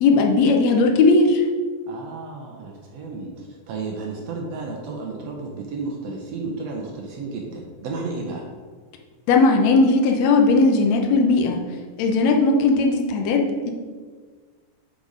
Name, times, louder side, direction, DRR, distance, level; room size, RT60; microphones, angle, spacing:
voice 1, 0.0-1.4 9.3-11.6 12.0-13.7, left 3 dB, 80° left, 2 dB, 1.5 m, -17 dB
voice 2, 1.9-8.5, right 3 dB, 80° right, 0 dB, 1.4 m, -32 dB
8.1 x 4.1 x 5.2 m, 1.5 s
omnidirectional pair, 4.0 m